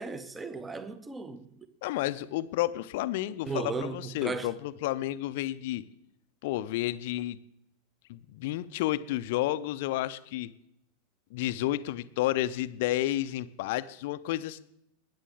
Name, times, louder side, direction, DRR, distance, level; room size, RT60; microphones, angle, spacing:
voice 1, 0.0-1.7 3.5-4.5, right 4 dB, 15° right, 0.9 m, -36 dB
voice 2, 1.8-5.8 6.4-7.4 8.1-10.5 11.3-14.6, left 15 dB, 50° left, 0.6 m, -31 dB
21.0 x 9.7 x 3.6 m
figure-of-eight pair, 90°, 0 cm